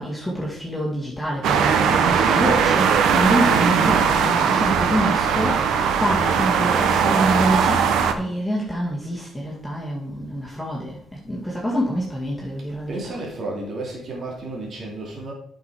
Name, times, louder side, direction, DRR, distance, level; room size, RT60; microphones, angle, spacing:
voice 1, 0.0-13.2, equal, ahead, -5 dB, 2.1 m, -26 dB
sound 1, 1.4-8.1, right 6 dB, 90° right, 0.9 m, -19 dB
voice 2, 12.9-15.3, right 2 dB, 50° right, -1 dB, 2.5 m, -32 dB
8.2 x 6.1 x 4.5 m, 0.67 s
cardioid pair, 110°, 0 cm